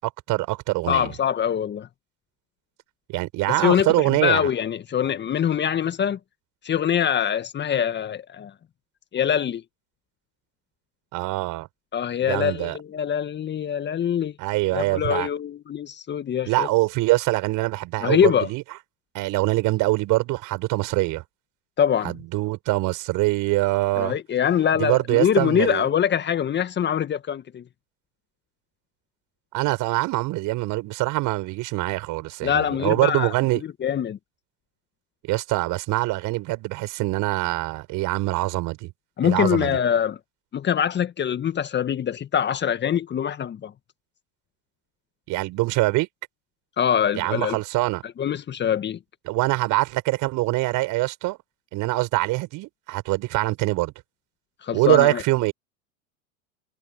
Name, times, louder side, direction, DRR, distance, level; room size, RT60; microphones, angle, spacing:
voice 1, 0.0-1.1 3.1-4.5 11.1-11.7 12.2-12.8 14.4-15.3 16.5-18.6 19.1-21.2 22.0-24.2 24.7-25.9 29.5-33.6 35.2-38.9 39.2-39.8 45.3-46.1 47.1-48.0 49.3-51.4 51.7-53.9 54.7-55.5, right 20 dB, 50° right, 7.5 m, -24 dB
voice 2, 0.9-1.9 3.5-6.2 6.6-8.5 9.1-9.6 11.9-14.3 14.7-16.7 18.0-18.5 21.8-22.2 24.0-27.6 32.4-33.3 33.8-34.2 39.2-40.2 40.5-43.7 46.8-47.6 48.2-49.0 54.6-55.2, left 9 dB, 25° left, 1.7 m, -23 dB
hypercardioid pair, 90°, 41 cm